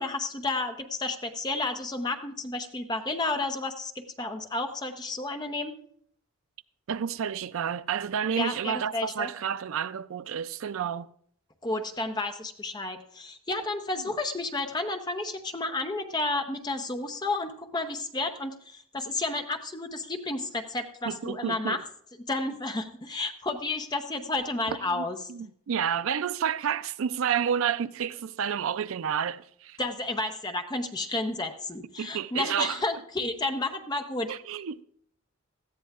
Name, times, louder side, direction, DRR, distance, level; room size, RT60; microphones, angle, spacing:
voice 1, 0.0-5.7 8.3-9.3 11.6-21.8 22.2-25.2 29.8-34.3, left 2 dB, 20° left, 0.8 m, -31 dB
voice 2, 6.9-11.1 21.1-21.8 24.7-29.8 32.0-32.8 34.3-34.8, right 8 dB, 70° right, 0.4 m, -30 dB
18.0 x 13.0 x 2.4 m
head